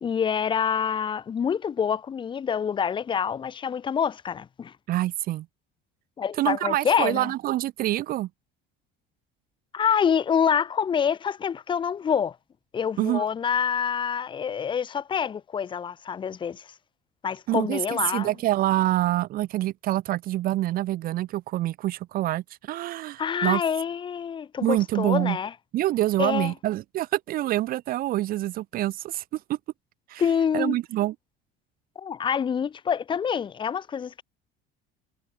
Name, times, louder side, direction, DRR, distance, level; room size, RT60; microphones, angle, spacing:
voice 1, 0.0-4.7 6.2-7.3 9.7-12.4 12.7-16.7 17.2-18.3 23.2-25.5 26.2-26.5 30.2-30.8 32.0-34.1, left 7 dB, 25° left, 2.4 m, -26 dB
voice 2, 4.9-5.4 6.4-8.3 13.0-13.2 17.5-23.6 24.6-25.4 25.7-29.2 29.5-29.6 30.1-30.2 30.5-31.1, right 15 dB, 45° right, 1.3 m, -26 dB
cardioid pair, 175°, 21 cm